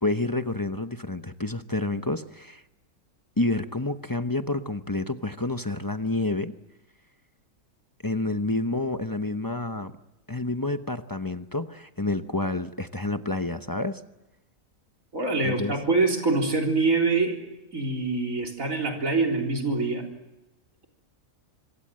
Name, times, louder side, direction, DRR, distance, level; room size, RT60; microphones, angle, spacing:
voice 1, 0.0-2.6 3.4-6.5 8.0-9.9 10.3-14.0 15.4-15.7, left 2 dB, 20° left, 8 dB, 0.7 m, -29 dB
voice 2, 15.1-17.4 17.7-20.0, right 3 dB, 60° right, 1 dB, 4.4 m, -24 dB
26.0 x 23.5 x 7.7 m, 1.0 s
omnidirectional pair, 1.6 m